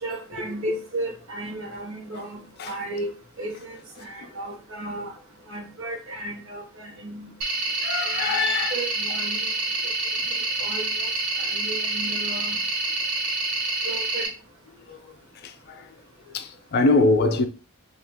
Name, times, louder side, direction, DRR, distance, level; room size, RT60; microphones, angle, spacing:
voice 1, 0.0-5.1 5.5-7.3 8.2-9.5 10.6-11.1 11.4-12.6 13.8-14.3, right 1 dB, 65° right, 0.9 m, -34 dB
sound 1, 7.4-14.3, right 2 dB, 85° right, 1.2 m, -27 dB
voice 2, 7.8-8.7 14.9-15.0 15.7-15.8 16.3-17.5, left 3 dB, 50° left, 0.4 m, -22 dB
2.8 x 2.3 x 3.4 m
head